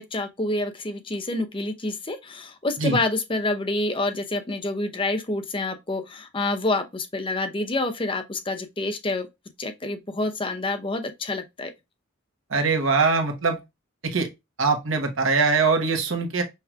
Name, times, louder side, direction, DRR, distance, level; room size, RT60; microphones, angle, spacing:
voice 1, 0.0-9.3 9.6-11.7, left 2 dB, 25° left, 0.7 m, -28 dB
voice 2, 12.5-13.6 14.0-14.3 14.6-16.4, right 4 dB, 80° right, 1.1 m, -22 dB
5.6 x 3.1 x 2.3 m
head